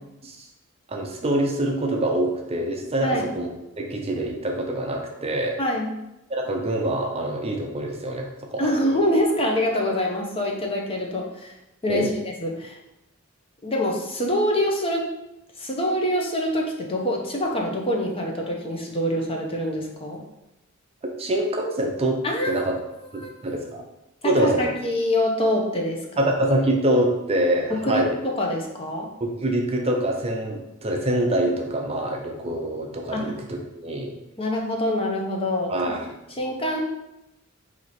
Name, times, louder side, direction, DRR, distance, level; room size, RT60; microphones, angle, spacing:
voice 1, 0.9-3.5 3.8-5.6 6.3-9.0 11.9-12.2 21.2-22.7 23.1-23.8 24.2-24.7 26.2-28.2 29.2-34.2 35.7-36.1, right 1 dB, 30° right, 1 dB, 0.6 m, -25 dB
voice 2, 5.6-5.9 8.6-11.5 11.8-12.1 12.4-12.8 13.6-15.1 15.6-20.2 22.2-22.7 23.2-23.3 24.2-26.3 27.7-29.1 33.1-33.3 34.4-35.7 36.3-36.8, left 1 dB, 25° left, 0 dB, 0.7 m, -25 dB
4.5 x 2.8 x 4.1 m, 0.90 s
head